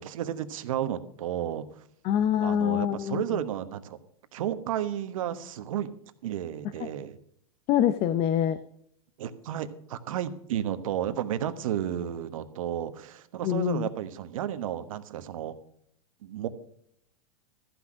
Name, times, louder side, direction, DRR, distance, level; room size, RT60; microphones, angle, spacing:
voice 1, 0.0-1.6 2.4-4.0 4.3-5.9 6.2-7.2 9.2-15.6 16.2-16.5, right 10 dB, 70° right, 11 dB, 1.2 m, -32 dB
voice 2, 2.0-3.2 7.7-8.6 13.4-13.9, left 10 dB, 35° left, 12 dB, 0.7 m, -25 dB
14.0 x 6.1 x 6.3 m, 0.70 s
hypercardioid pair, 130°, 18 cm